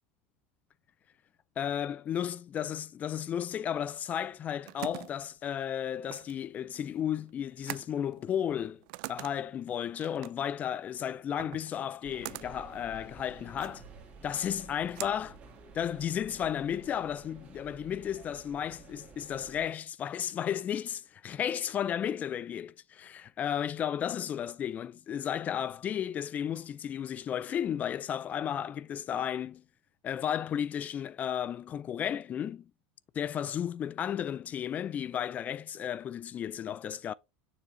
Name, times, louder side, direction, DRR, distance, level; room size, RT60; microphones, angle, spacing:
voice 1, 1.6-8.8 9.1-13.8 14.2-15.4 15.7-29.6 30.0-32.7 33.1-37.1, left 9 dB, 30° left, 0.3 m, -33 dB
sound 1, 4.2-16.1, right 21 dB, 65° right, 0.4 m, -46 dB
sound 2, 12.0-19.7, right 4 dB, 30° right, 1.7 m, -52 dB
6.9 x 2.8 x 5.0 m
supercardioid pair, 130°, 5 cm